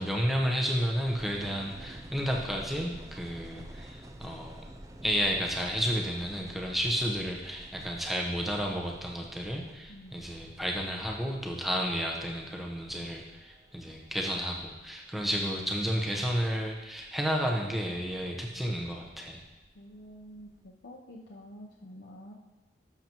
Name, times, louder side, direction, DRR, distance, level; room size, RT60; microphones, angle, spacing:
voice 1, 0.0-4.6 5.0-19.4, equal, ahead, -1 dB, 1.0 m, -32 dB
sound 1, 1.0-20.7, right 1 dB, 20° right, 0.5 m, -50 dB
voice 2, 9.9-10.3 19.7-22.3, equal, 75° left, -3 dB, 0.8 m, -49 dB
12.0 x 6.9 x 3.0 m, 1.1 s
head